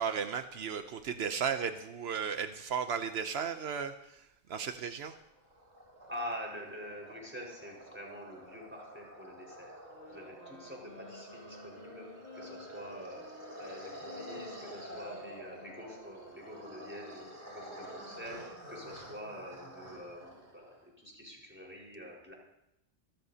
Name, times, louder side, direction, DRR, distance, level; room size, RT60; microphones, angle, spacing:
voice 1, 0.0-5.1, right 7 dB, 80° right, 8 dB, 1.0 m, -35 dB
sound 1, 5.1-20.8, equal, 55° right, 4.8 m, -49 dB
voice 2, 6.1-9.7 10.1-13.2 13.6-22.3, equal, 10° right, -2 dB, 4.7 m, -46 dB
sound 2, 9.9-17.4, left 3 dB, 65° left, 2.6 m, -54 dB
27.5 x 13.5 x 2.8 m, 0.83 s
omnidirectional pair, 1.0 m